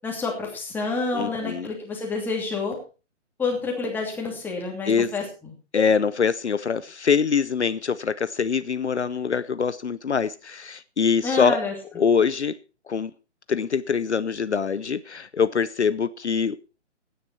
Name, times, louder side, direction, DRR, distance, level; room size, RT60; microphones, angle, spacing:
voice 1, 0.0-2.8 3.4-5.5 11.2-11.7, left 3 dB, 5° left, 2.8 m, -28 dB
voice 2, 1.1-1.7 4.9-5.1 5.7-11.6 12.0-12.6 12.9-13.1 13.5-16.6, left 6 dB, 70° left, 0.7 m, -24 dB
16.5 x 9.8 x 4.5 m
figure-of-eight pair, 135°, 36 cm